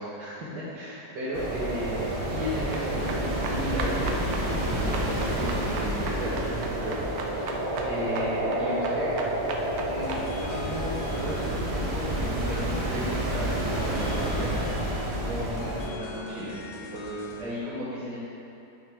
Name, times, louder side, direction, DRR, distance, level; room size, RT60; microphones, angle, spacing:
voice 1, 0.0-7.0 7.3-7.5 7.8-9.1 9.8-15.0 15.2-18.2, equal, 85° right, -10 dB, 2.0 m, -35 dB
sound 1, 1.3-15.9, right 1 dB, 30° right, 0.6 m, -29 dB
sound 2, 2.7-10.2, right 4 dB, 70° right, 1.1 m, -38 dB
sound 3, 10.0-17.4, left 3 dB, 80° left, 1.5 m, -43 dB
8.8 x 6.0 x 3.6 m, 2.7 s
omnidirectional pair, 1.8 m